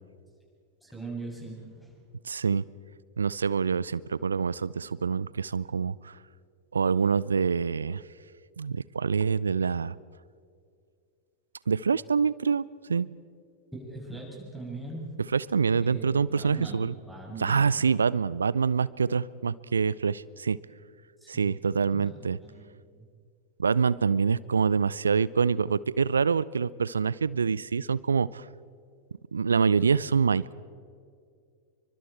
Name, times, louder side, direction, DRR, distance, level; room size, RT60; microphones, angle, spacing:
voice 1, 0.8-1.9 13.7-15.1 15.7-17.8 21.2-21.5 21.9-22.7 22.9-23.0, right 2 dB, ahead, -3 dB, 7.6 m, -41 dB
voice 2, 2.2-2.6 3.2-6.2 6.7-8.0 8.6-10.0 11.7-13.1 15.3-16.9 17.4-20.6 21.3-22.4 23.6-28.4 29.3-30.5, right 5 dB, 75° right, 22 dB, 0.5 m, -26 dB
29.5 x 24.0 x 4.5 m, 2.2 s
figure-of-eight pair, 90°, 0 cm